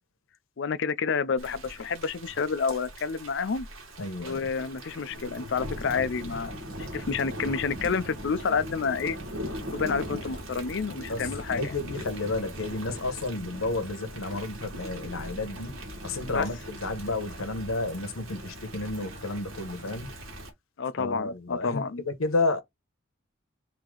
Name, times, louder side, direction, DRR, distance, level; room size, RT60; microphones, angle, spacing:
voice 1, 0.6-3.7 4.2-9.2 9.7-11.7 16.3-16.5 20.8-22.0, left 5 dB, 60° left, 0.5 m, -29 dB
Thunder / Rain, 1.4-20.5, equal, 80° right, 1.8 m, -40 dB
voice 2, 4.0-4.5 11.1-11.3 11.5-20.1 21.0-22.6, left 2 dB, 85° left, 1.2 m, -31 dB
4.8 x 2.8 x 3.8 m
head